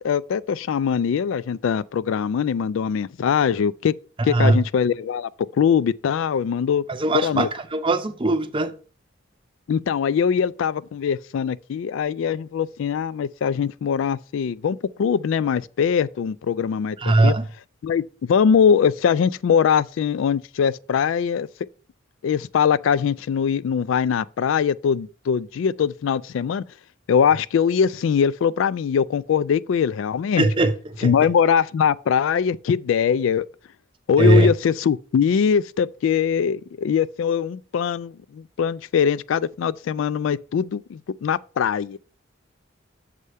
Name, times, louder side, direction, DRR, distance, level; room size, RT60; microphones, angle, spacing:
voice 1, 0.0-3.9 4.2-5.3 5.6-6.8 7.2-7.5 9.7-17.4 17.8-18.0 18.3-21.5 22.2-26.6 27.1-30.4 31.0-33.5 34.1-42.0, left 7 dB, 75° left, 0.3 m, -22 dB
voice 2, 4.2-4.6 6.9-8.7 17.0-17.5 30.4-31.3 34.2-34.5, right 2 dB, 25° right, 0.6 m, -20 dB
6.7 x 4.9 x 5.4 m
head